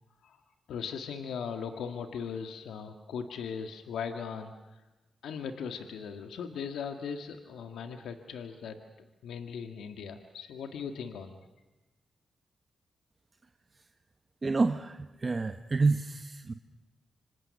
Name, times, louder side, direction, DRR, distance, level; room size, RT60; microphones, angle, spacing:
voice 1, 0.7-4.8 5.2-8.8 9.2-11.4, left 6 dB, 85° left, 6 dB, 1.8 m, -38 dB
voice 2, 14.4-16.5, right 3 dB, 40° right, 7 dB, 1.4 m, -28 dB
26.5 x 26.0 x 6.6 m, 1.1 s
cardioid pair, 60°, 0 cm